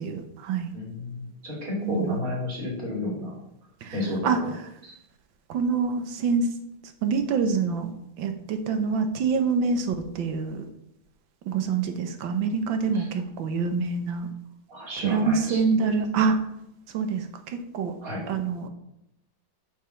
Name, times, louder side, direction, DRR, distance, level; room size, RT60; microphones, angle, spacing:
voice 1, 0.0-0.7 1.8-2.2 3.8-4.0 4.2-4.4 5.5-6.5 7.0-7.9 8.2-10.7 11.5-14.3 15.0-16.4 16.9-17.9 18.3-18.7, right 5 dB, 75° right, 8 dB, 1.7 m, -26 dB
voice 2, 0.7-3.4 3.9-4.3 4.8-4.9 12.9-13.0 14.7-15.6 18.0-18.3, left 1 dB, 45° right, -2 dB, 3.2 m, -32 dB
8.6 x 5.4 x 5.8 m, 0.82 s
omnidirectional pair, 2.2 m